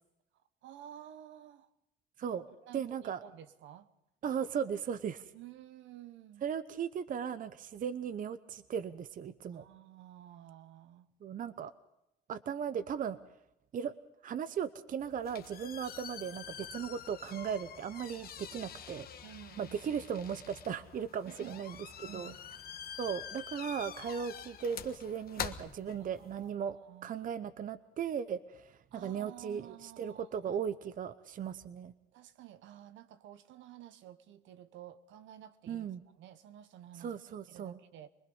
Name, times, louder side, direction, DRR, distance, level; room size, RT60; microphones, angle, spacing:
voice 1, 0.6-1.7 2.3-3.9 5.3-6.4 9.5-11.1 19.2-19.9 21.3-21.6 22.0-22.4 26.0-26.5 26.8-27.1 28.9-30.7 32.1-35.9 36.1-37.1 37.5-38.1, right 12 dB, 70° right, 12 dB, 1.1 m, -52 dB
voice 2, 2.7-3.2 4.2-5.3 6.4-9.6 11.2-11.7 12.3-13.2 13.7-13.9 14.2-19.1 19.6-22.3 23.0-26.8 27.0-31.9 35.7-36.0 37.0-37.8, right 7 dB, 40° right, 14 dB, 0.8 m, -37 dB
sound 1, 15.0-26.5, left 8 dB, 50° left, 1.4 m, -46 dB
25.5 x 20.0 x 5.5 m, 0.87 s
cardioid pair, 105°, 20 cm